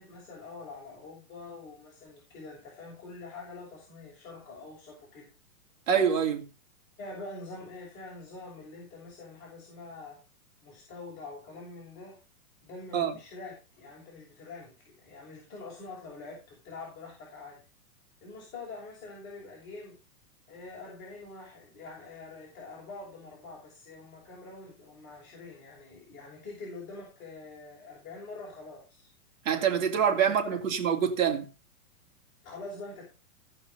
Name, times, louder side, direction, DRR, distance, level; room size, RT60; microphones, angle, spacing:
voice 1, 0.0-5.3 7.0-10.2 10.6-12.2 12.6-17.6 18.2-20.0 20.5-29.1 29.9-30.6 32.4-33.0, left 3 dB, 25° left, 6.0 m, -45 dB
voice 2, 5.9-6.4 12.9-13.1 29.4-31.5, right 7 dB, 60° right, 2.9 m, -25 dB
16.5 x 5.5 x 5.5 m
hypercardioid pair, 160°, 44 cm